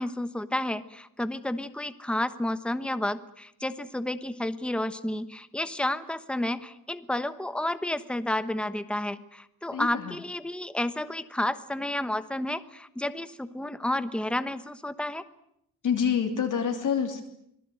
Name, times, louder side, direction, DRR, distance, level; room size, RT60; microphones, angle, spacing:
voice 1, 0.0-15.2, left 1 dB, 5° left, 12 dB, 1.1 m, -31 dB
voice 2, 9.7-10.1 15.8-17.2, left 7 dB, 55° left, 3 dB, 2.9 m, -27 dB
26.0 x 19.5 x 9.1 m, 0.75 s
wide cardioid pair, 145°, 37 cm